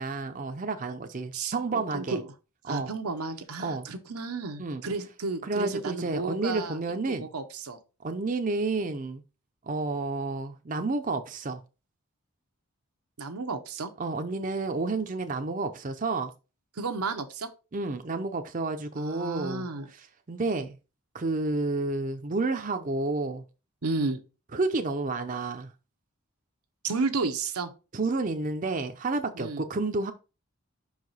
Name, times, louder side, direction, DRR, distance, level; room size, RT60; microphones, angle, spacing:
voice 1, 0.0-2.2 2.7-2.9 3.6-3.9 4.6-4.8 5.4-7.3 8.0-9.2 9.6-11.6 14.0-16.3 17.7-19.7 20.3-20.8 21.1-23.4 24.5-25.7 27.9-30.1, right 3 dB, 35° right, 0.5 m, -30 dB
voice 2, 1.3-2.2 2.7-6.8 7.2-7.8 13.2-13.9 16.8-17.5 18.9-19.9 23.8-24.2 26.8-27.7 29.3-29.6, right 3 dB, 90° right, 0.9 m, -32 dB
5.7 x 4.7 x 4.0 m
head